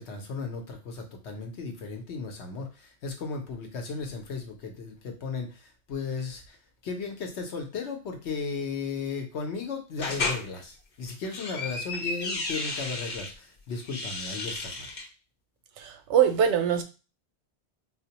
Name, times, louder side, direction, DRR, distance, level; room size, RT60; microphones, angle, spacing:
voice 1, 0.0-6.6 6.8-15.0, left 4 dB, 80° left, 4 dB, 1.1 m, -35 dB
sound 1, 10.0-10.4 11.1-13.3 13.8-15.1, left 3 dB, 55° left, 0.9 m, -33 dB
voice 2, 15.8-16.8, right 8 dB, 90° right, 7 dB, 0.9 m, -23 dB
4.4 x 2.1 x 2.8 m, 0.32 s
omnidirectional pair, 1.1 m